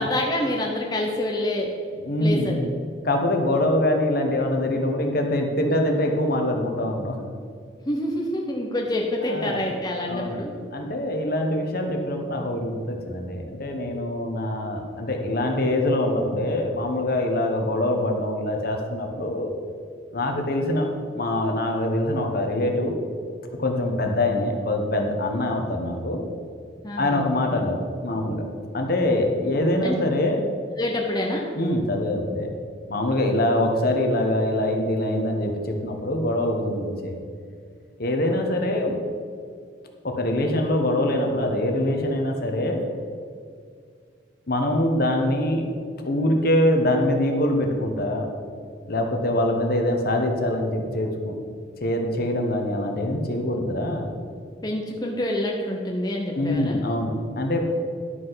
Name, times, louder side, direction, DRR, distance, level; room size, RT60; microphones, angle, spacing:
voice 1, 0.0-1.7 2.2-2.7 7.8-10.5 26.8-27.3 29.8-29.9 30.8-31.4 54.6-56.8, left 1 dB, 20° left, -1 dB, 0.9 m, -27 dB
voice 2, 2.0-2.7 3.0-7.2 9.2-9.6 10.1-10.4 10.7-19.5 20.1-20.9 21.1-23.0 23.6-26.2 27.0-28.4 28.7-30.4 31.5-32.5 32.9-37.2 38.0-39.0 40.0-42.8 44.5-45.7 46.0-48.3 48.9-51.4 51.8-54.1 56.3-57.6, left 1 dB, 50° left, 3 dB, 1.2 m, -24 dB
11.5 x 5.6 x 5.7 m, 2.1 s
head